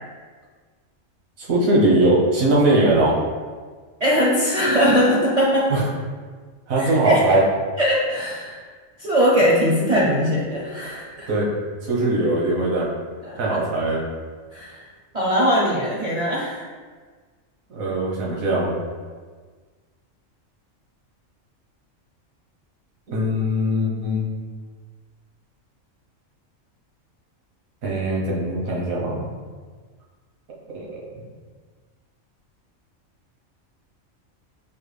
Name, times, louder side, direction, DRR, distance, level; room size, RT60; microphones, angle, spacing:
voice 1, 1.4-3.2 5.7-5.9 6.7-7.4 11.3-11.5 11.9-12.9 13.4-14.0 17.8-18.7 23.1-24.3 27.8-29.2 30.7-31.0, right 1 dB, 90° right, -4 dB, 1.4 m, -20 dB
voice 2, 4.0-5.7 6.8-7.2 7.8-8.6 9.0-11.3 13.2-13.6 14.5-14.8 15.1-16.6, equal, 50° right, -5 dB, 0.5 m, -20 dB
5.4 x 2.2 x 3.3 m, 1.5 s
omnidirectional pair, 1.4 m